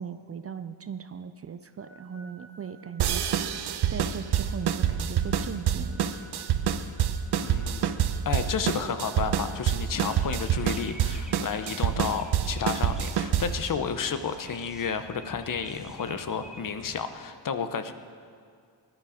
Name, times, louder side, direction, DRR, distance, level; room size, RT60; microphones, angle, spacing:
voice 1, 0.0-3.4 3.9-6.2, right 7 dB, 35° right, 10 dB, 0.4 m, -38 dB
sound 1, 1.8-11.8, equal, 20° left, 4.3 m, -55 dB
sound 2, 3.0-13.7, right 9 dB, 60° right, 0.8 m, -27 dB
voice 2, 7.4-17.9, left 6 dB, 45° left, 10 dB, 0.9 m, -31 dB
sound 3, 10.0-17.0, right 1 dB, ahead, 1.3 m, -48 dB
18.5 x 12.0 x 5.1 m, 2.2 s
cardioid pair, 125°, 44 cm